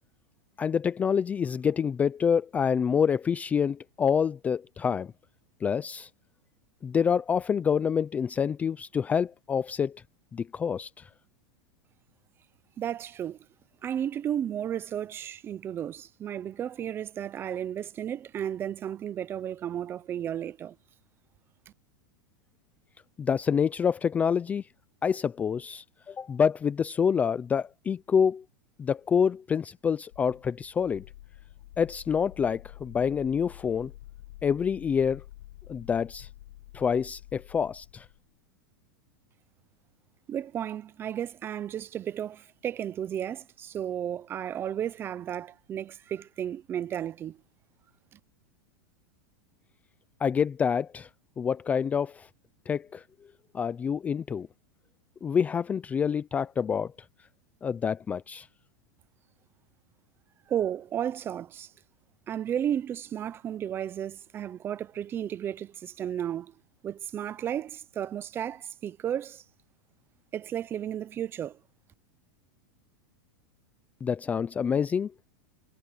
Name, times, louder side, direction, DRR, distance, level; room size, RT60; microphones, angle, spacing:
voice 1, 0.6-5.1 5.6-6.1 6.8-10.0 10.3-11.1 23.2-24.6 25.0-28.4 28.8-31.1 31.8-33.9 34.4-35.2 35.7-36.3 36.7-38.1 50.2-51.1 51.4-52.3 52.7-53.0 53.5-54.5 55.2-56.9 57.6-58.5 74.0-75.1, left 7 dB, 15° left, 0.4 m, -27 dB
voice 2, 12.8-13.4 13.8-20.8 40.3-47.4 60.5-61.7 62.3-66.5 66.8-69.4 70.3-71.6, right 10 dB, 20° right, 0.7 m, -33 dB
sound 1, 30.1-38.3, left 15 dB, 75° left, 4.1 m, -48 dB
supercardioid pair, 160°, 11 cm